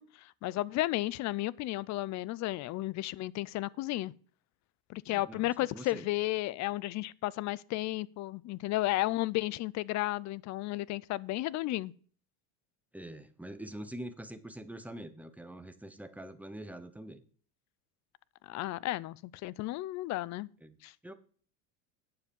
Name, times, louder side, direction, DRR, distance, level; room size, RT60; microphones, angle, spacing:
voice 1, 0.0-4.1 4.9-11.9 18.4-19.2 19.4-20.5 20.8-20.9, left 17 dB, 40° left, 0.4 m, -33 dB
voice 2, 5.1-6.1 12.9-17.2 20.6-20.8 21.0-21.1, right 1 dB, 5° right, 0.8 m, -45 dB
9.6 x 7.2 x 5.3 m
cardioid pair, 130°, 45 cm